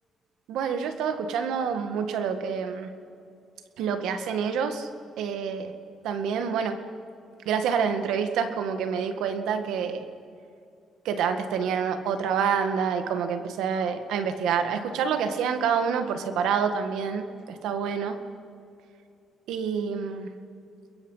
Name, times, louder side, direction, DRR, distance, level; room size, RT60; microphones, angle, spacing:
voice 1, 0.5-2.9 3.8-4.9 5.2-5.7 6.0-6.8 7.5-10.0 11.1-18.2 19.5-20.3, right 6 dB, 85° right, 8 dB, 1.8 m, -27 dB
30.0 x 21.5 x 5.7 m, 2.6 s
cardioid pair, 90°, 0 cm